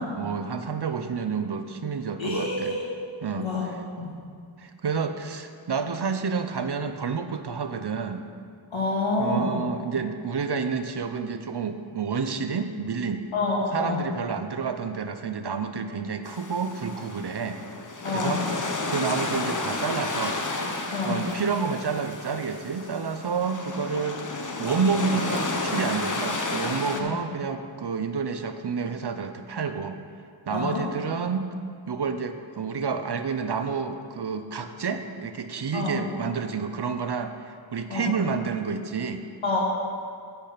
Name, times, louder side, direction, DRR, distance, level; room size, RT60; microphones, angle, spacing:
voice 1, 0.1-2.7 3.2-3.8 4.6-8.3 9.2-13.3 13.7-17.6 18.1-18.4 18.9-20.4 21.0-24.2 24.6-30.0 30.5-31.5 31.9-39.2, right 5 dB, 55° right, 9 dB, 0.7 m, -29 dB
voice 2, 2.2-2.9 3.4-4.1 8.7-9.6 13.3-14.1 18.0-18.4 20.9-21.3 26.9-27.2 30.5-30.9 35.7-36.0 37.9-38.1 39.4-39.6, left 2 dB, 65° left, -4 dB, 2.2 m, -27 dB
sound 1, 16.3-27.0, left 2 dB, 40° left, 0.9 m, -32 dB
8.4 x 7.0 x 5.7 m, 2.2 s
wide cardioid pair, 50°, 49 cm